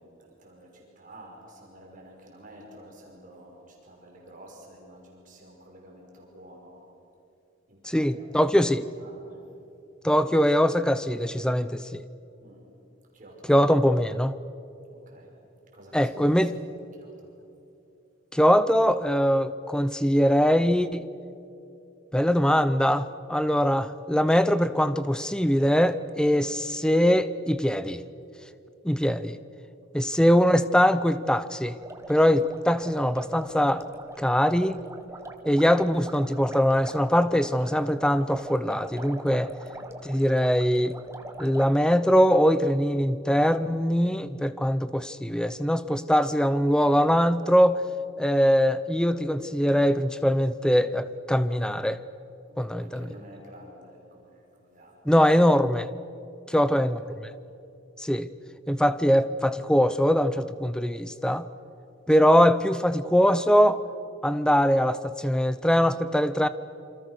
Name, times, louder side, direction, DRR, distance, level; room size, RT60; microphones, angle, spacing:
voice 1, 0.0-6.9 7.7-9.4 12.4-12.6 13.1-13.6 14.9-15.4 15.7-17.3 29.9-30.1 39.7-39.9 52.6-55.2 56.5-57.2, right 1 dB, 40° right, -1 dB, 5.8 m, -50 dB
voice 2, 7.8-8.8 10.0-12.0 13.5-14.3 15.9-16.6 18.3-21.0 22.1-28.0 28.8-29.4 29.9-31.8 32.1-33.9 34.2-34.8 35.4-39.5 40.0-41.0 41.4-47.8 48.2-52.0 52.6-53.1 55.1-55.9 56.5-57.0 58.0-58.3 58.7-61.5 62.1-63.8 64.2-66.5, equal, 5° left, 13 dB, 0.7 m, -22 dB
sound 1, 31.8-41.7, right 1 dB, 15° right, 1.6 m, -42 dB
27.5 x 26.5 x 6.6 m, 2.8 s
head